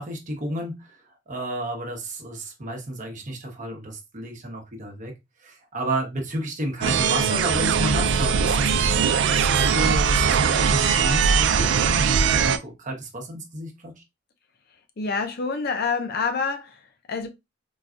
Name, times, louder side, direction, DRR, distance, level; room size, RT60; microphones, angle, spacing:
voice 1, 0.0-5.1 5.4-13.9, right 1 dB, 40° right, 0.9 m, -31 dB
sound 1, 6.8-12.6, right 6 dB, 65° right, 0.3 m, -20 dB
voice 2, 15.0-16.8 17.1-17.3, left 4 dB, 55° left, 0.5 m, -27 dB
3.9 x 2.3 x 2.4 m
head